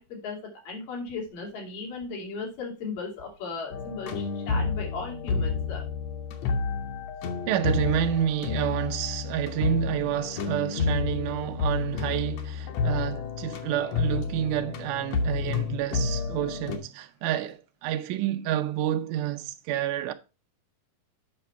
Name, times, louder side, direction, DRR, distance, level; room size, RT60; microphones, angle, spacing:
voice 1, 0.0-5.8, left 4 dB, 85° left, 4.2 m, -36 dB
sound 1, 3.7-16.8, left 5 dB, 65° left, 1.9 m, -30 dB
voice 2, 7.5-20.1, right 11 dB, 80° right, 2.1 m, -29 dB
7.8 x 5.9 x 4.5 m
omnidirectional pair, 3.8 m